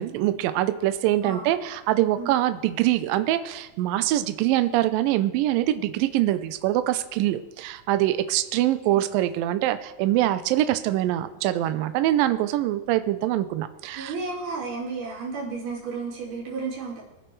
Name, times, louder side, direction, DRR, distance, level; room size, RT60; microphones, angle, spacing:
voice 1, 0.0-14.1, right 14 dB, 85° right, 11 dB, 2.3 m, -24 dB
voice 2, 1.2-1.5 2.2-2.3 8.9-9.0 14.0-17.0, right 4 dB, 65° right, -6 dB, 4.6 m, -33 dB
22.0 x 9.3 x 3.2 m, 1.0 s
omnidirectional pair, 4.0 m